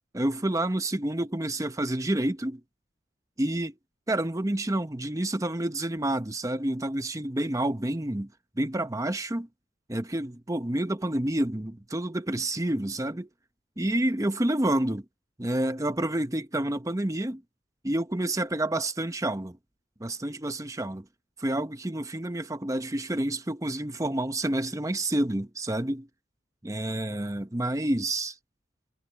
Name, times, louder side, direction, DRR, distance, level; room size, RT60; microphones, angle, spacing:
voice 1, 0.1-2.6 3.4-3.7 4.1-8.3 8.6-9.5 9.9-13.3 13.8-15.0 15.4-17.4 17.8-19.6 20.0-21.1 21.4-26.1 26.6-28.4, right 1 dB, 15° right, 0.9 m, -29 dB
head